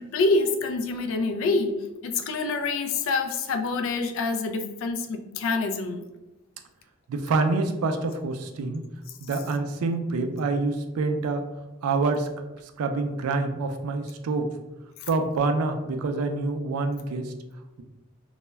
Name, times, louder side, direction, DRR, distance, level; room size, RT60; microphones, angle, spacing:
voice 1, 0.0-6.0 9.1-9.2 15.0-15.1, left 3 dB, 65° left, 5 dB, 0.3 m, -26 dB
voice 2, 7.1-8.8 9.2-11.4 11.8-12.3 12.8-14.5 15.1-17.3, right 3 dB, 90° right, 6 dB, 0.3 m, -26 dB
2.2 x 2.0 x 3.2 m, 1.0 s
head